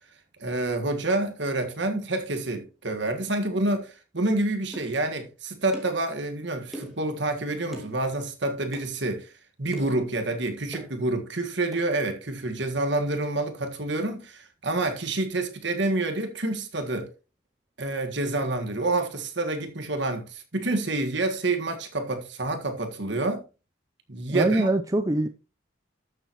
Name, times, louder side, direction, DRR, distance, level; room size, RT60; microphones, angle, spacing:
voice 1, 0.4-9.3 9.6-17.1 17.8-23.5 24.1-24.7, right 2 dB, 60° right, 1.7 m, -28 dB
sound 1, 4.7-4.9 5.7-6.0 6.7-7.0 7.7-7.9 8.7-8.9 9.7-10.0 10.7-10.9 11.7-11.9, right 1 dB, ahead, 2.3 m, -40 dB
voice 2, 24.3-25.3, right 1 dB, 15° right, 0.5 m, -23 dB
12.5 x 7.2 x 3.0 m
head